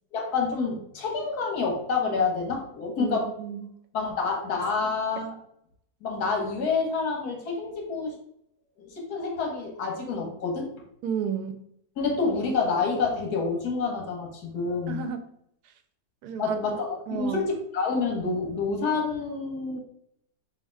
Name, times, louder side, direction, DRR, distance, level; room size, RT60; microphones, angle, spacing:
voice 1, 0.1-3.3 3.9-5.3 6.0-8.1 8.8-10.7 12.0-15.0 16.4-19.8, left 4 dB, 80° left, 1 dB, 1.6 m, -28 dB
voice 2, 3.0-3.7 11.0-11.6 14.9-15.2 15.6-15.7 16.2-16.6 17.1-17.4, right 8 dB, 85° right, 8 dB, 1.1 m, -32 dB
3.5 x 2.8 x 4.5 m, 0.72 s
omnidirectional pair, 1.6 m